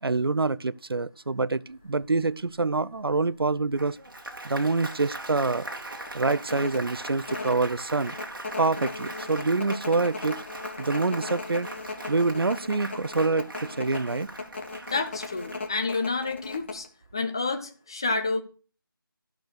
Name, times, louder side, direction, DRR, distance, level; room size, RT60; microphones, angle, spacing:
voice 1, 0.0-4.0 4.4-5.7 6.1-8.2 8.6-10.4 10.8-11.7 12.1-14.3, right 3 dB, 80° right, 0.6 m, -26 dB
sound 1, 1.8-2.0 2.6-2.7 3.0-3.9 4.3-4.4 4.7-5.0 5.4-5.5 6.1-16.9, left 3 dB, 30° left, 1.4 m, -38 dB
Applause, 3.8-16.5, right 2 dB, 65° right, 2.4 m, -40 dB
voice 2, 14.9-16.9 17.1-18.4, left 3 dB, 10° left, 0.5 m, -29 dB
13.5 x 6.5 x 6.4 m
figure-of-eight pair, 170°, 12 cm